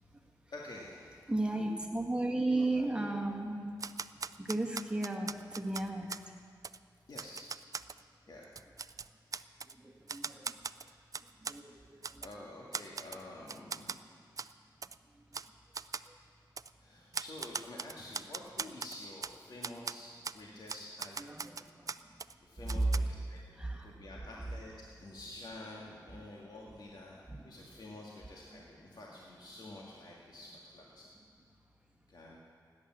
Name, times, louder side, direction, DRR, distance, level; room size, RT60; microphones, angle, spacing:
voice 1, 0.5-1.3 7.1-7.5 8.3-8.5 11.7-11.8 12.2-14.4 16.8-21.3 22.4-23.5 23.8-31.1 32.1-32.4, left 1 dB, 65° left, -3 dB, 2.0 m, -49 dB
voice 2, 1.3-3.7 4.4-6.3 9.8-10.6 11.4-12.2 16.1-16.2 20.5-20.7 21.2-21.9 22.7-23.1 23.6-23.9 24.3-24.4 27.3-27.5 28.5-28.6, right 2 dB, 15° right, 2 dB, 1.9 m, -34 dB
Typewriter, 3.8-6.3 6.6-6.8 7.2-8.0 8.4-9.7 10.1-11.6 12.0-12.3 12.7-13.2 13.5-14.0 14.4-14.5 14.8-15.0 15.3-15.5 15.7-16.1 16.6-16.7 17.1-19.3 19.6-19.9 20.2-20.4 20.7-22.3 22.7-23.0, right 5 dB, 50° right, 0.4 m, -40 dB
17.0 x 10.0 x 7.5 m, 2.2 s
wide cardioid pair, 75°, 8 cm